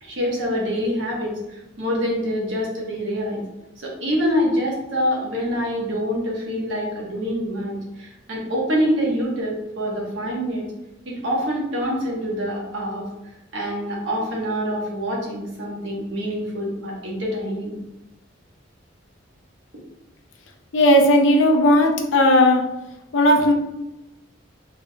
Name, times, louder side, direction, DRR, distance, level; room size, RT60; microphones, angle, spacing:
voice 1, 0.0-3.4 3.8-10.7 11.0-13.0 13.5-17.7, equal, 75° right, -3 dB, 1.1 m, -25 dB
voice 2, 20.7-22.6 23.1-23.5, left 1 dB, 90° left, 3 dB, 0.6 m, -16 dB
3.6 x 3.6 x 2.2 m, 0.95 s
head